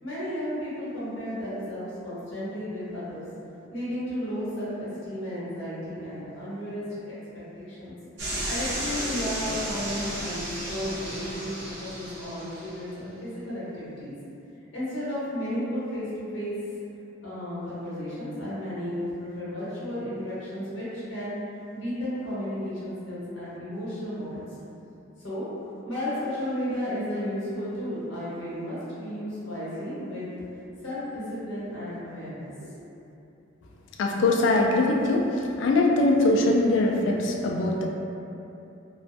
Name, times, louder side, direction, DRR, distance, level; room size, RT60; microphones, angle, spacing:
voice 1, 0.0-3.2 3.7-7.1 7.6-7.9 8.5-11.5 11.8-14.1 14.7-16.5 17.2-21.4 21.7-24.4 25.2-25.6 25.9-30.3 30.8-32.8, equal, 90° left, -10 dB, 0.8 m, -33 dB
sound 1, 8.2-12.8, right 1 dB, 60° right, 0.7 m, -33 dB
voice 2, 34.0-35.3 35.6-37.9, left 2 dB, 70° left, 0 dB, 0.3 m, -22 dB
2.4 x 2.2 x 2.5 m, 2.8 s
head